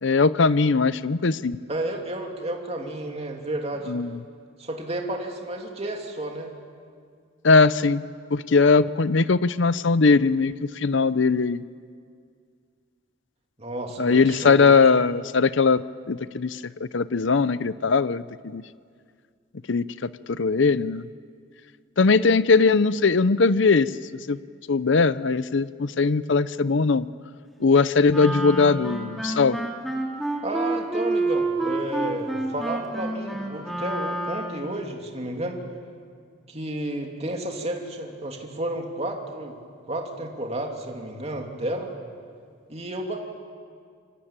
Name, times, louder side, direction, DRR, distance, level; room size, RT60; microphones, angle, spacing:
voice 1, 0.0-1.6 3.9-4.2 7.4-8.0 8.3-11.6 14.0-15.8 16.1-18.6 19.7-21.1 22.0-23.9 24.3-24.4 24.7-27.1 27.6-29.6, left 4 dB, 60° left, 15 dB, 0.6 m, -20 dB
voice 2, 1.7-3.9 4.6-6.5 13.6-14.9 30.4-35.6 36.5-39.6 39.9-41.9 42.7-43.2, right 1 dB, 30° right, 1 dB, 2.9 m, -31 dB
Wind instrument woodwind instrument, 28.1-34.7, right 2 dB, ahead, 3.4 m, -28 dB
26.5 x 24.5 x 8.9 m, 2.1 s
head